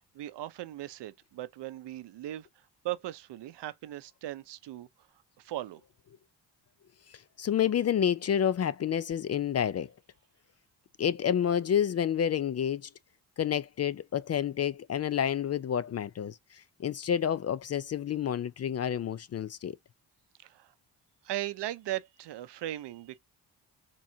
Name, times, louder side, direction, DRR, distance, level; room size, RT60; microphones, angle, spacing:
voice 1, 0.1-2.5 2.8-4.9 5.4-5.8 20.4-20.7 21.2-23.2, right 14 dB, 65° right, 0.7 m, -38 dB
voice 2, 7.1-9.9 11.0-12.9 13.4-19.8, left 9 dB, 35° left, 0.4 m, -29 dB
4.6 x 3.0 x 2.6 m
supercardioid pair, 65°, 45 cm